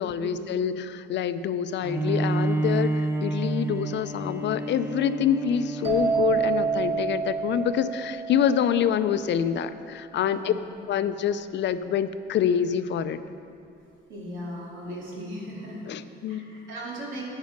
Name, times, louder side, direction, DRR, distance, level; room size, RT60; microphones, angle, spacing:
voice 1, 0.0-10.5 10.9-13.2 15.9-16.7, left 8 dB, 65° left, 12 dB, 0.5 m, -26 dB
Bowed string instrument, 1.8-7.5, right 2 dB, 10° right, 0.8 m, -29 dB
sound 1, 5.8-9.5, right 5 dB, 30° right, 2.0 m, -28 dB
voice 2, 10.2-10.7 14.1-15.8 16.3-17.2, equal, 75° right, -3 dB, 2.7 m, -37 dB
10.5 x 9.0 x 5.2 m, 2.5 s
cardioid pair, 90°, 20 cm